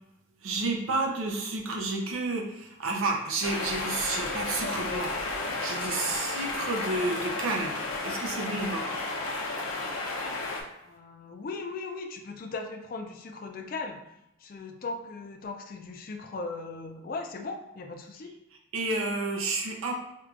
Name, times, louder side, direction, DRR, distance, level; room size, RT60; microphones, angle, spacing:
voice 1, 0.4-7.7 8.0-8.9 18.7-19.9, right 3 dB, 80° right, 1 dB, 0.6 m, -31 dB
sound 1, 3.4-10.6, left 2 dB, 85° left, 0.6 m, -32 dB
voice 2, 10.8-14.0 14.4-18.3, left 3 dB, 45° left, 4 dB, 0.3 m, -38 dB
4.5 x 2.3 x 2.5 m, 0.87 s
head